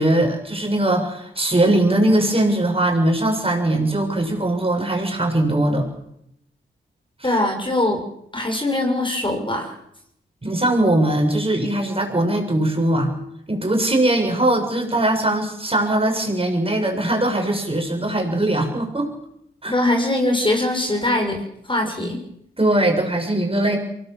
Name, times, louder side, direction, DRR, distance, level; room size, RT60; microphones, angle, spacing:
voice 1, 0.0-5.9 10.4-13.1 13.5-19.1 19.6-19.7 22.6-23.8, right 1 dB, 25° right, 2 dB, 7.0 m, -20 dB
voice 2, 7.2-8.0 8.3-9.8 19.7-21.4 21.7-22.2, left 1 dB, 25° left, 3 dB, 6.3 m, -21 dB
23.5 x 18.5 x 7.4 m, 0.77 s
supercardioid pair, 45°, 21 cm